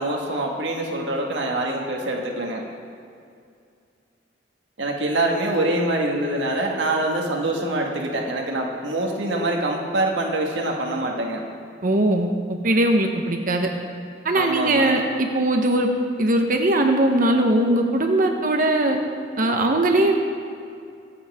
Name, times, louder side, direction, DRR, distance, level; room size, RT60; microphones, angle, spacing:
voice 1, 0.0-2.6 4.8-11.4 14.3-14.9, right 1 dB, 80° right, 0 dB, 1.7 m, -25 dB
voice 2, 11.8-12.3 12.6-13.7 14.2-15.9 16.2-19.0 19.4-20.2, right 1 dB, 50° right, 3 dB, 1.0 m, -20 dB
25.5 x 8.5 x 3.6 m, 2.4 s
head